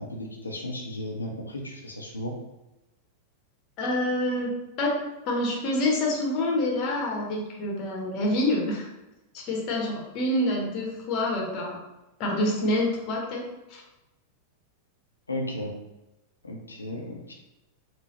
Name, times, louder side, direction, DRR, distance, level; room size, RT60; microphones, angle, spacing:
voice 1, 0.0-2.3 15.3-15.7 16.4-17.3, left 1 dB, 80° left, 0 dB, 0.6 m, -34 dB
voice 2, 3.8-4.5 4.8-5.0 5.3-8.9 9.3-11.8 12.2-13.4 13.7-13.8, left 1 dB, 40° left, -1 dB, 1.0 m, -27 dB
3.9 x 2.2 x 3.1 m, 0.98 s
figure-of-eight pair, 90°, 0 cm